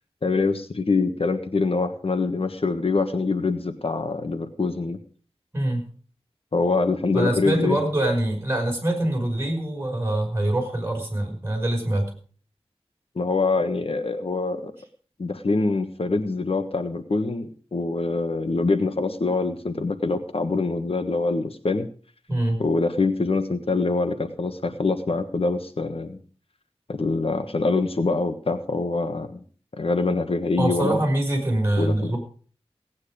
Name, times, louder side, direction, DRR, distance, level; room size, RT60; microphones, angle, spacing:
voice 1, 0.2-5.0 6.5-7.8 13.1-14.7 15.2-21.9 22.6-26.2 26.9-29.4 29.8-31.0 31.8-32.1, left 3 dB, 65° left, 8 dB, 1.4 m, -24 dB
voice 2, 5.5-5.8 7.1-12.1 22.3-22.6 30.6-32.2, right 1 dB, 25° right, 2 dB, 5.7 m, -24 dB
18.0 x 9.6 x 5.0 m, 0.42 s
wide cardioid pair, 65°, 11 cm